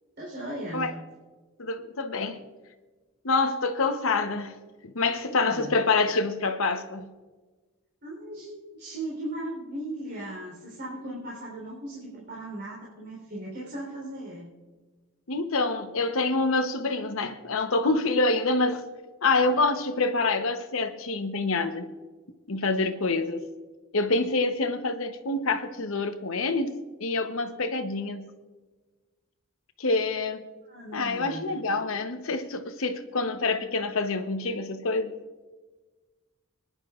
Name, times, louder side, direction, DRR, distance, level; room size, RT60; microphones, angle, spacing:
voice 1, 0.2-0.9 5.3-5.7 8.0-14.5 30.6-31.4, right 1 dB, 50° right, 3.7 m, -37 dB
voice 2, 1.6-2.4 3.2-4.6 4.8-7.1 15.3-18.9 19.2-21.9 22.5-23.4 23.9-28.3 29.8-30.5 30.9-35.1, left 3 dB, 70° left, 0.9 m, -26 dB
27.0 x 10.5 x 2.4 m
head